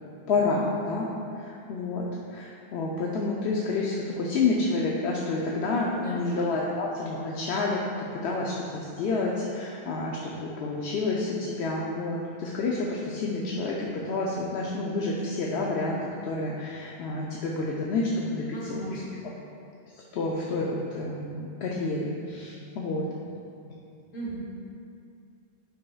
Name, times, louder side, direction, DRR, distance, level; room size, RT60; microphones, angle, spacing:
voice 1, 0.3-1.1 1.3-7.8 8.1-19.0 20.1-23.1, left 3 dB, 85° left, -3 dB, 0.9 m, -29 dB
voice 2, 6.0-6.4 18.5-19.2 24.1-24.4, right 1 dB, 55° left, -4 dB, 1.3 m, -36 dB
9.3 x 5.5 x 2.3 m, 2.5 s
omnidirectional pair, 1.1 m